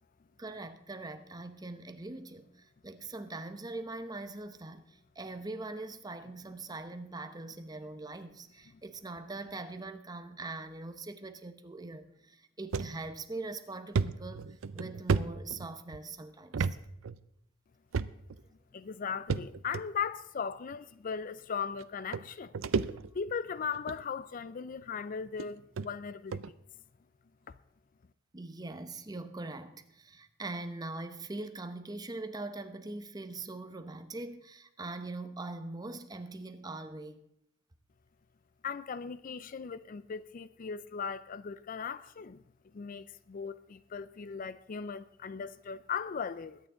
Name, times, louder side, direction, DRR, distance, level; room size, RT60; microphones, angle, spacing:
voice 1, 0.4-16.7 28.3-37.2, right 2 dB, 20° right, 0.8 m, -42 dB
sound 1, 12.7-12.9 13.4-13.5 13.9-16.0 16.5-16.8 17.0-17.2 17.9-18.4 19.3-19.8 20.7-20.8 21.8-21.9 22.1-23.3 23.7-24.0 24.8-24.9 25.4-25.5 25.8-25.9 26.3-26.5, right 5 dB, 85° right, 0.5 m, -32 dB
voice 2, 18.7-22.8 23.1-26.4 27.5-27.6 38.6-42.4 42.7-46.6, left 6 dB, 45° left, 0.4 m, -38 dB
21.5 x 9.3 x 3.8 m
head